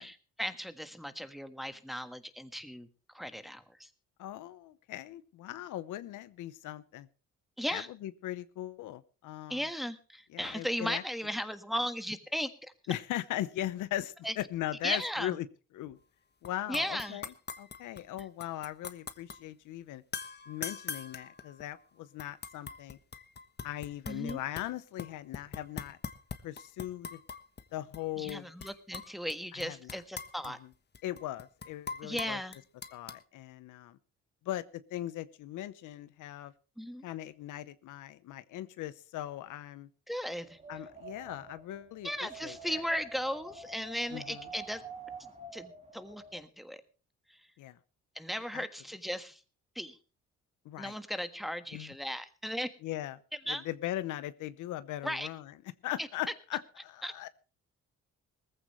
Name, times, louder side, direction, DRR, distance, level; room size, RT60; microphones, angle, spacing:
voice 1, 0.0-2.9 3.1-3.9 7.6-7.9 9.5-12.5 14.2-14.3 14.8-15.3 16.7-17.2 24.1-24.4 28.2-30.6 32.0-32.6 36.8-37.1 40.1-40.6 42.0-44.8 45.5-46.8 47.3-47.4 48.1-49.4 49.7-50.0 50.8-52.7 53.5-53.6 55.0-55.3 56.0-56.1 57.0-57.1, equal, ahead, 9 dB, 1.5 m, -36 dB
voice 2, 4.2-7.1 7.7-9.7 10.3-11.0 12.9-15.5 15.7-16.0 16.4-17.3 17.6-20.0 20.5-23.0 23.6-26.0 26.4-27.2 27.7-28.5 29.5-30.0 30.5-30.7 31.0-32.4 32.9-34.0 34.4-36.5 37.0-39.9 40.7-42.8 44.1-44.5 47.6-47.8 48.5-48.6 50.6-51.0 51.7-51.9 52.8-53.2 53.5-55.5 55.8-57.3, left 13 dB, 85° left, 15 dB, 0.9 m, -39 dB
sound 1, 16.4-16.5 16.7-19.4 20.1-21.8 22.2-24.7 25.0-27.6 27.9-28.0 28.3-29.3 29.6-33.2, left 5 dB, 35° left, 1.2 m, -42 dB
Wind, 40.4-46.4, right 3 dB, 25° right, 2.6 m, -48 dB
19.0 x 15.0 x 3.1 m, 0.35 s
cardioid pair, 90°, 30 cm